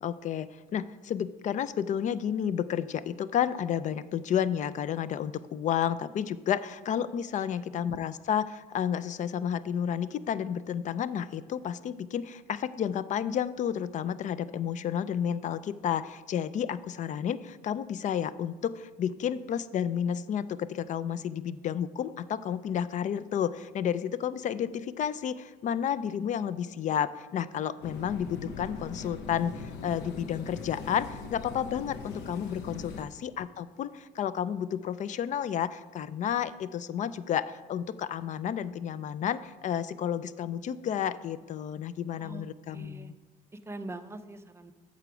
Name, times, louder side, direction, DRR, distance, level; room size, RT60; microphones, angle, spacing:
voice 1, 0.0-43.1, left 9 dB, 45° left, 16 dB, 0.4 m, -31 dB
sound 1, 27.8-33.1, left 4 dB, 85° left, 0.8 m, -41 dB
voice 2, 42.2-43.1 43.5-44.7, right 2 dB, 15° right, 8 dB, 0.6 m, -43 dB
8.0 x 6.8 x 5.0 m, 1.3 s
cardioid pair, 110°, 17 cm